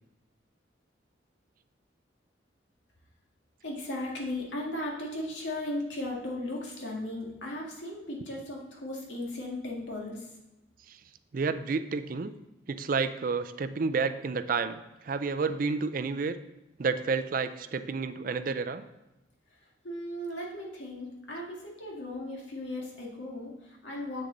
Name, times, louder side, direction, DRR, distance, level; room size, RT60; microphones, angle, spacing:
voice 1, 3.6-10.3 19.8-24.2, left 1 dB, 75° left, -2 dB, 2.0 m, -36 dB
voice 2, 11.3-12.3 12.7-16.4 16.8-18.8, right 4 dB, 50° right, 11 dB, 0.4 m, -30 dB
7.9 x 6.8 x 3.8 m, 0.96 s
head